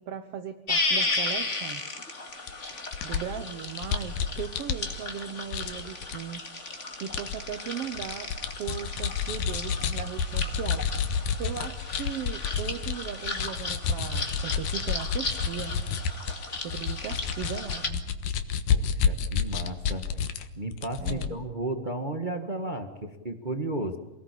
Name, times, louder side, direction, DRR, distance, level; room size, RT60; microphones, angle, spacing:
voice 1, 0.0-1.8 2.2-2.5 3.0-6.4 7.0-15.7 16.5-18.1 21.0-21.4, right 8 dB, 65° right, 9 dB, 1.5 m, -38 dB
sound 1, 0.7-17.9, left 3 dB, 25° left, 2.1 m, -35 dB
sound 2, 2.5-2.6 2.9-5.2 5.5-6.2 7.1-7.4 7.7-12.9 13.2-20.4 20.7-21.3, left 6 dB, 75° left, 2.9 m, -29 dB
voice 2, 18.7-20.3 20.6-24.0, right 2 dB, 50° right, 6 dB, 0.5 m, -34 dB
27.5 x 19.0 x 8.4 m, 1.0 s
omnidirectional pair, 3.9 m